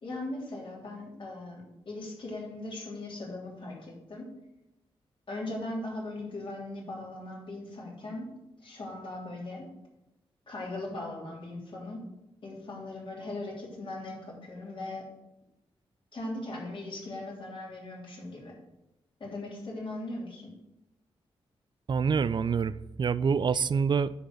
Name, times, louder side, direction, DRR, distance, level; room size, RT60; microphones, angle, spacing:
voice 1, 0.0-4.3 5.3-8.3 8.6-9.7 10.5-12.0 12.4-15.0 16.1-18.5 19.2-20.5, left 2 dB, 55° left, -3 dB, 3.0 m, -39 dB
voice 2, 21.9-24.1, right 6 dB, 45° right, 17 dB, 0.4 m, -26 dB
9.8 x 4.2 x 6.5 m, 0.92 s
cardioid pair, 90°, 11 cm